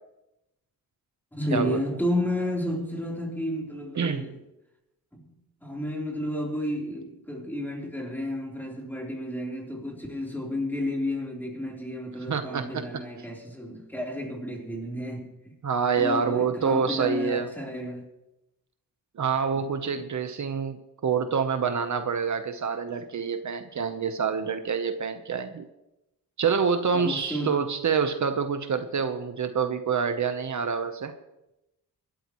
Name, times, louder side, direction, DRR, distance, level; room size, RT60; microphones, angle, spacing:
voice 1, 1.3-4.4 5.1-5.3 5.6-15.6 16.0-18.0 26.9-27.6, left 1 dB, 5° left, 3.7 m, -32 dB
voice 2, 3.9-4.3 12.3-12.8 15.6-17.5 19.2-25.6 26.4-31.1, right 6 dB, 50° right, 1.0 m, -27 dB
25.0 x 13.0 x 3.1 m
wide cardioid pair, 135°, 36 cm